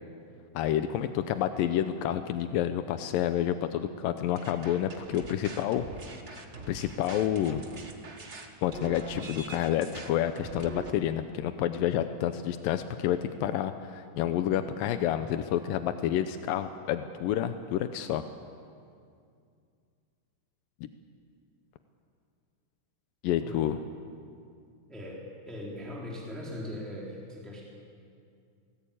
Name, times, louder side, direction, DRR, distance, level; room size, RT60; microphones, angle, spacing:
voice 1, 0.5-5.9 6.3-7.6 8.6-18.2 23.2-23.8, left 11 dB, 85° left, 9 dB, 2.5 m, -29 dB
sound 1, 4.4-10.9, right 3 dB, 85° right, 0.6 m, -44 dB
voice 2, 24.9-27.6, left 1 dB, ahead, -4 dB, 3.7 m, -40 dB
23.5 x 18.0 x 8.7 m, 2.3 s
omnidirectional pair, 4.0 m